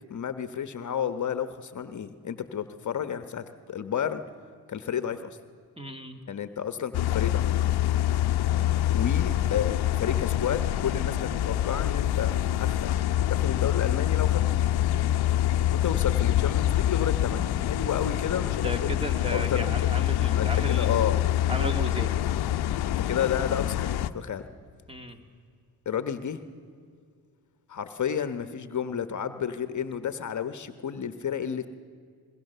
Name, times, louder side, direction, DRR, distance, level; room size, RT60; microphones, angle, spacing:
voice 1, 0.1-4.2 4.7-5.4 6.3-7.5 8.9-12.9 13.3-14.6 15.7-18.9 19.5-19.9 20.4-21.2 22.9-24.5 25.8-26.4 27.7-31.7, left 8 dB, 50° left, 10 dB, 1.1 m, -31 dB
voice 2, 5.8-6.2 18.6-21.0 21.5-22.2 24.9-25.2, right 1 dB, 15° right, 5 dB, 2.3 m, -34 dB
sound 1, 6.9-24.1, left 12 dB, 75° left, 0.8 m, -25 dB
22.5 x 21.5 x 6.8 m, 2.2 s
cardioid pair, 70°, 39 cm